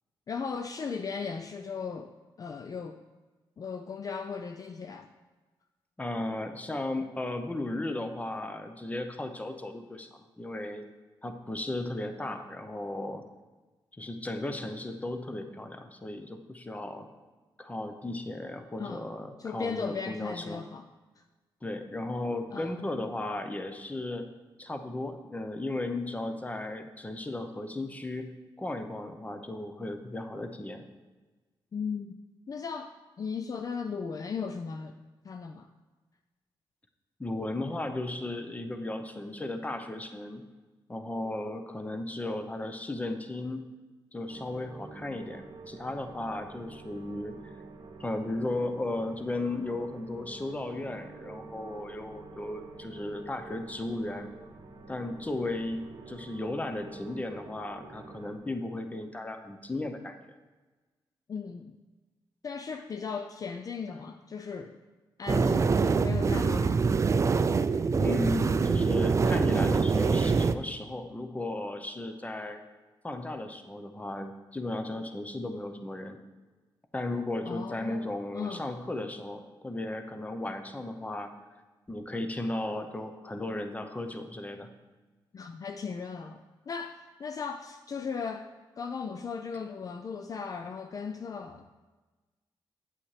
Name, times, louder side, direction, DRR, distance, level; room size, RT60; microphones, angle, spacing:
voice 1, 0.3-2.1 2.4-3.0 3.6-5.1 18.8-19.1 19.4-20.8 21.2-21.3 22.5-22.9 31.7-32.2 32.5-32.9 33.2-34.9 35.2-35.7 61.3-61.8 62.4-64.8 65.2-66.8 77.4-78.6 85.3-88.5 88.8-91.8, left 5 dB, 45° left, 6 dB, 0.4 m, -37 dB
voice 2, 6.0-10.8 11.2-13.2 13.9-17.1 17.6-20.6 21.6-24.3 24.6-30.8 37.2-40.5 40.9-43.7 44.1-47.5 48.0-54.3 54.9-60.1 68.0-72.6 73.0-76.2 76.9-81.3 81.9-84.7, left 2 dB, 15° left, 6 dB, 0.8 m, -35 dB
sound 1, 44.3-58.4, right 3 dB, 60° right, 0.9 m, -48 dB
sound 2, 65.3-70.5, right 5 dB, 35° right, 0.4 m, -25 dB
8.4 x 7.2 x 3.3 m, 1.3 s
cardioid pair, 70°, 9 cm